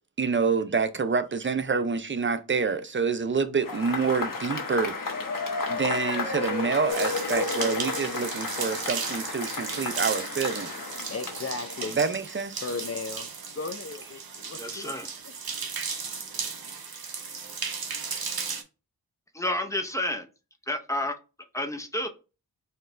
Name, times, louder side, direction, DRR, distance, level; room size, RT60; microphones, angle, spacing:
voice 1, 0.2-5.0 5.7-10.7 12.0-12.6, right 5 dB, 35° right, 0.5 m, -27 dB
Cheering / Applause / Crowd, 3.6-12.3, left 4 dB, 60° left, 1.0 m, -32 dB
sound 1, 6.9-18.6, right 5 dB, 75° right, 0.8 m, -35 dB
voice 2, 11.1-12.0 12.6-13.3 13.6-14.9, left 4 dB, 40° left, 0.5 m, -35 dB
voice 3, 14.5-15.1 19.3-20.3 20.7-21.2 21.5-22.1, left 1 dB, 10° left, 0.7 m, -30 dB
4.3 x 2.4 x 3.2 m
wide cardioid pair, 50°, 37 cm